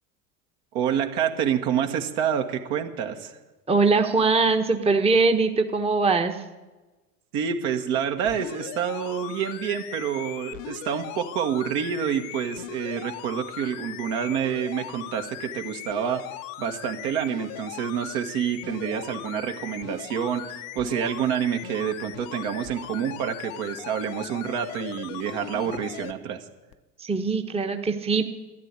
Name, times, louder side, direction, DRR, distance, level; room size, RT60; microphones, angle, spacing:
voice 1, 0.7-3.4 7.3-16.2 16.6-26.4, right 8 dB, 60° right, 5 dB, 1.8 m, -28 dB
voice 2, 3.7-6.4 27.0-28.3, right 4 dB, 15° right, 5 dB, 1.1 m, -22 dB
sound 1, 8.3-26.1 26.7-26.8, left 14 dB, 60° left, 0.9 m, -39 dB
13.0 x 10.5 x 9.7 m, 1.2 s
hypercardioid pair, 85°, 46 cm